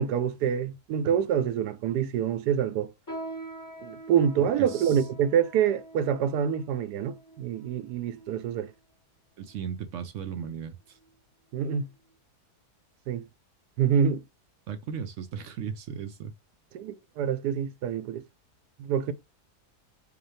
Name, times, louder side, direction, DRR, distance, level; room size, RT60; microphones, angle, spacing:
voice 1, 0.0-2.9 3.8-8.7 11.5-11.9 13.1-13.3 13.8-14.2 16.7-18.2 18.8-19.1, right 8 dB, 80° right, 1.2 m, -26 dB
sound 1, 3.1-8.7 9.4-9.5 10.3-10.6 11.0-11.1 11.8-11.9, right 2 dB, 15° left, 0.8 m, -44 dB
voice 2, 4.7-5.0 9.4-11.0 14.7-16.3, right 7 dB, 65° right, 0.8 m, -36 dB
4.9 x 2.4 x 3.2 m
omnidirectional pair, 1.7 m